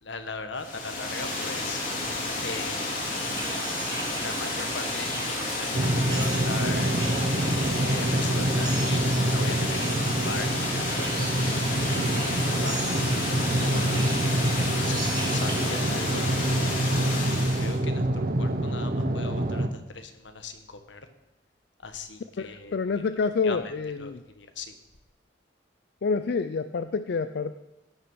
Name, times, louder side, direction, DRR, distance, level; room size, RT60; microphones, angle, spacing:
voice 1, 0.0-1.8 2.4-2.8 4.0-6.9 7.4-11.5 11.9-12.8 13.6-16.8 17.5-21.0 21.8-22.8 23.4-23.6 24.0-24.7, left 3 dB, 80° left, 8 dB, 1.3 m, -39 dB
Water, 0.6-17.8, left 2 dB, 45° left, 2.7 m, -31 dB
sound 1, 3.0-15.7, right 2 dB, 20° right, 1.7 m, -37 dB
sound 2, 5.7-19.7, right 1 dB, 50° right, 0.8 m, -26 dB
voice 2, 22.4-24.2 26.0-27.5, left 4 dB, 60° left, 11 dB, 0.4 m, -28 dB
16.0 x 6.2 x 6.3 m, 0.95 s
head